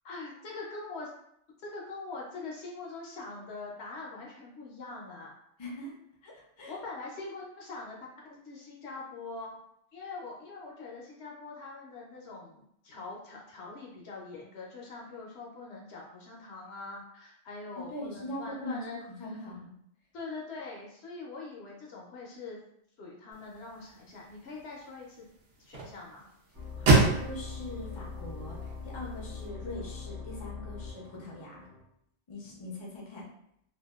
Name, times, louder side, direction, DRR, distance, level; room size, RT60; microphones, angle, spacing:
voice 1, 0.0-1.1 1.6-5.4 6.7-8.0 8.2-9.5 9.9-19.0 19.3-19.4 20.1-22.6 23.0-25.2 25.6-26.3, left 3 dB, 65° left, -2 dB, 0.8 m, -43 dB
voice 2, 5.6-5.9 6.2-6.7 17.8-19.7 26.8-31.6 32.3-33.2, left 1 dB, 35° left, -4 dB, 0.4 m, -41 dB
sound 1, 23.3-29.5, right 3 dB, 80° right, 0.9 m, -31 dB
sound 2, 26.5-31.8, left 4 dB, 45° right, 1.0 m, -42 dB
2.6 x 2.1 x 2.3 m, 0.73 s
omnidirectional pair, 1.3 m